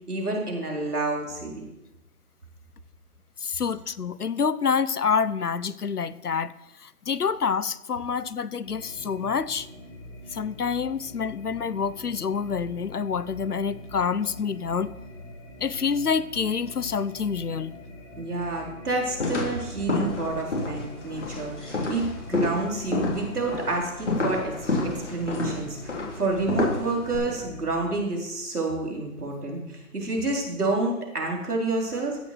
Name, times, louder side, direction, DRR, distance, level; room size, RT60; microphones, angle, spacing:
voice 1, 0.1-1.6 18.2-24.5 24.8-32.2, right 2 dB, 80° right, -1 dB, 4.2 m, -29 dB
voice 2, 3.4-6.5 6.8-9.7 10.3-14.9 15.6-17.7, left 6 dB, 85° left, 17 dB, 1.0 m, -27 dB
sound 1, 8.6-27.9, left 1 dB, 15° left, 3.6 m, -44 dB
sound 2, 19.2-27.2, left 2 dB, 50° left, 3.8 m, -29 dB
15.0 x 6.5 x 6.0 m, 0.93 s
figure-of-eight pair, 175°, 45 cm